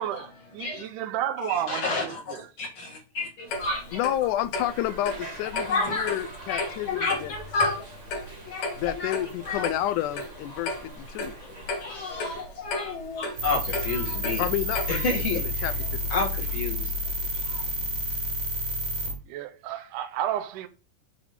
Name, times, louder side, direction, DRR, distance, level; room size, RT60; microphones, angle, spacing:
voice 1, 0.0-2.5 19.3-20.7, right 11 dB, 80° right, 2.3 m, -32 dB
voice 2, 1.4-4.0 5.5-6.2 6.5-7.9 8.5-9.1 9.5-9.7 10.5-10.6 11.4-11.5 11.8-14.4 14.9-15.7 16.1-16.9 17.4-17.6, left 3 dB, 45° left, 2.3 m, -30 dB
Clock, 3.5-15.2, left 2 dB, 60° left, 2.6 m, -35 dB
voice 3, 3.9-7.3 8.8-11.3 14.4-15.0 15.4-16.1, left 13 dB, 80° left, 2.0 m, -30 dB
sound 1, 4.5-12.4, right 1 dB, 30° right, 1.5 m, -45 dB
sound 2, 13.4-19.2, left 1 dB, 65° right, 2.3 m, -30 dB
7.0 x 3.7 x 4.9 m
omnidirectional pair, 3.7 m